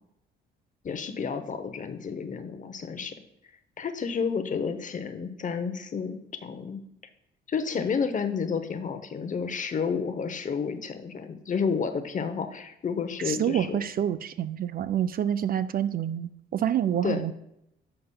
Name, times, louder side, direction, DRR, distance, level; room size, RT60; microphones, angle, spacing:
voice 1, 0.8-3.1 3.8-6.8 7.5-13.8 17.0-17.2, left 6 dB, 40° left, 9 dB, 0.8 m, -31 dB
voice 2, 13.3-17.3, right 10 dB, 50° right, 13 dB, 0.4 m, -27 dB
11.0 x 6.7 x 2.3 m, 0.81 s
cardioid pair, 90°, 20 cm